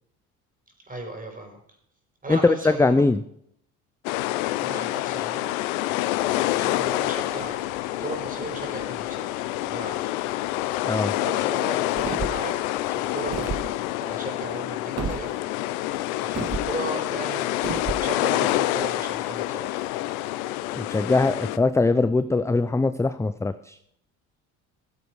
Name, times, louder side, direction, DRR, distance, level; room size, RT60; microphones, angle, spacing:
voice 1, 0.9-1.6 2.2-3.1 4.6-5.6 6.5-10.1 11.2-12.5 12.9-15.3 16.2-17.5 18.0-19.8, right 2 dB, 20° right, 3 dB, 5.3 m, -36 dB
voice 2, 2.3-3.2 10.8-11.1 20.7-23.8, left 3 dB, 5° left, 12 dB, 0.5 m, -21 dB
sound 1, 4.0-21.6, left 16 dB, 75° left, 0.7 m, -27 dB
sound 2, 11.9-12.5 13.2-13.7 15.0-15.2 16.3-16.7 17.6-18.0, right 5 dB, 35° right, 1.7 m, -30 dB
15.5 x 7.9 x 4.8 m, 0.69 s
hypercardioid pair, 65°, 43 cm